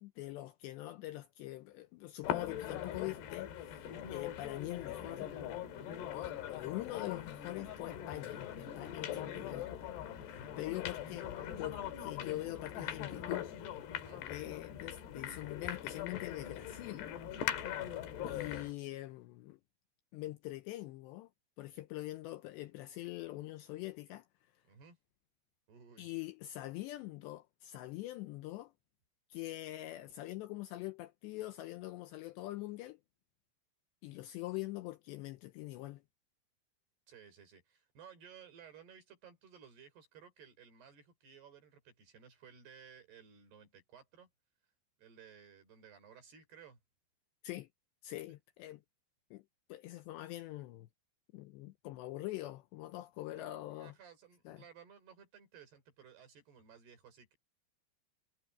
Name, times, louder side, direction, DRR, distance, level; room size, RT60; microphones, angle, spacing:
voice 1, 0.0-5.3 6.1-9.7 10.2-11.3 11.6-13.5 14.2-17.2 18.3-19.6 20.1-21.3 21.6-24.3 26.0-28.7 29.3-33.0 34.0-36.0 47.4-47.7 48.0-48.8 49.3-49.4 49.7-50.9 51.3-53.9 54.5-54.6, left 16 dB, 80° left, 2.6 m, -43 dB
sound 1, 2.2-18.7, left 10 dB, 65° left, 3.7 m, -41 dB
voice 2, 13.9-14.2 24.7-25.0 25.7-26.1 37.1-44.3 45.0-46.8 53.3-53.5 53.7-57.4, right 7 dB, 55° right, 6.8 m, -57 dB
omnidirectional pair, 5.6 m